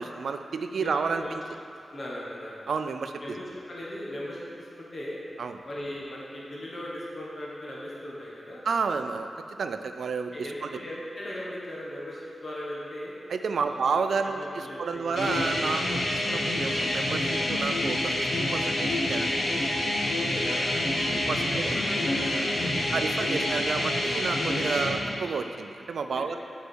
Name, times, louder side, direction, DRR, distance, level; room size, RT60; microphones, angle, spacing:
voice 1, 0.0-1.4 2.7-3.4 5.4-5.6 8.7-10.3 10.6-10.7 13.3-19.3 21.1-21.7 22.9-26.4, right 5 dB, 75° right, 7 dB, 0.4 m, -31 dB
voice 2, 0.7-1.3 1.9-2.6 3.2-5.2 5.6-8.6 10.3-13.1 13.6-13.9 14.2-15.2 16.0-16.2 20.0-23.0 23.2-23.5 24.7-25.0 26.1-26.4, left 1 dB, 40° left, -5 dB, 1.4 m, -39 dB
sound 1, 15.2-24.9, left 1 dB, 75° left, 1.4 m, -27 dB
8.3 x 4.8 x 6.2 m, 2.4 s
wide cardioid pair, 160°, 0 cm